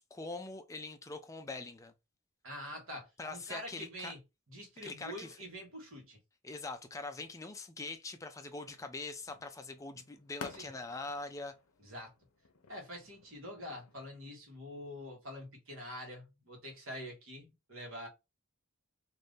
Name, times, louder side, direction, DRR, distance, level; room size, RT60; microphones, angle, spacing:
voice 1, 0.0-1.9 3.2-4.1 4.8-5.4 6.4-11.5, left 3 dB, 15° left, 0.4 m, -43 dB
voice 2, 2.4-4.2 4.5-6.2 10.5-10.7 11.8-12.1 12.7-18.1, equal, 60° right, 1.3 m, -46 dB
sound 1, 8.5-14.2, left 4 dB, 65° left, 0.7 m, -53 dB
2.6 x 2.6 x 3.4 m
head